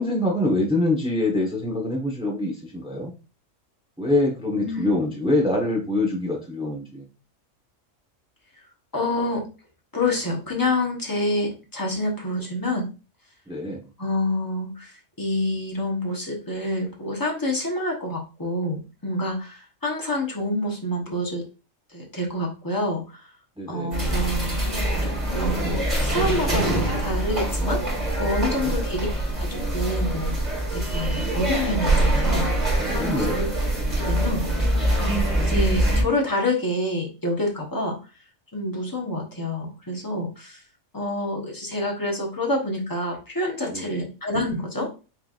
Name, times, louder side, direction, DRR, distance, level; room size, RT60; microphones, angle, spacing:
voice 1, 0.0-3.1 4.0-7.0 13.5-13.8 23.6-23.9 28.4-28.7 33.0-33.4 43.7-44.0, left 2 dB, 5° right, -1 dB, 1.2 m, -25 dB
voice 2, 4.6-5.0 8.9-9.5 9.9-12.9 14.0-21.4 21.9-23.3 23.7-24.6 25.0-29.1 29.4-32.5 32.9-33.5 34.0-34.4 35.0-35.1 35.4-38.0 38.5-40.6 40.9-44.9, left 1 dB, 15° left, 0 dB, 1.1 m, -27 dB
sound 1, 23.9-36.0, right 1 dB, 35° right, 1.9 m, -24 dB
5.8 x 3.4 x 2.5 m, 0.32 s
omnidirectional pair, 1.3 m